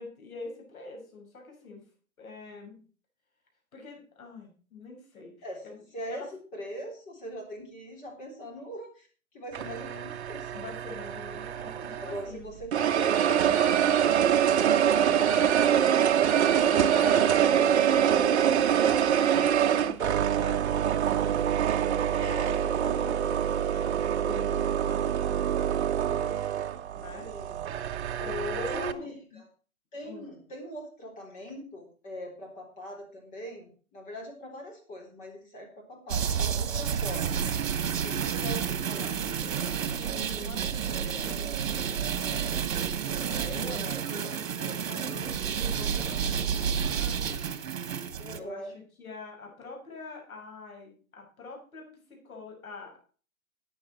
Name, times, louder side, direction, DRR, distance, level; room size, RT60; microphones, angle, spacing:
voice 1, 0.0-1.8 2.2-2.8 3.7-5.8 6.1-6.3 10.5-12.5 16.3-17.6 18.1-21.6 22.0-26.3 26.7-27.3 28.2-29.4 30.0-30.4 39.7-42.6 43.2-45.3 45.6-47.5 48.3-51.9 52.2-53.0, left 3 dB, 80° left, 1 dB, 7.4 m, -44 dB
voice 2, 5.9-6.3 6.5-9.1 9.3-10.6 12.0-16.0 27.2-27.6 28.5-29.5 29.9-37.5 37.9-39.2 43.7-43.8 48.2-48.7, equal, 20° left, 0 dB, 3.8 m, -42 dB
sound 1, 9.5-12.3 12.7-28.9, right 9 dB, 50° right, 1.0 m, -25 dB
sound 2, 36.1-48.4, right 7 dB, 65° right, 1.7 m, -30 dB
14.0 x 9.0 x 4.5 m, 0.39 s
hypercardioid pair, 155°, 42 cm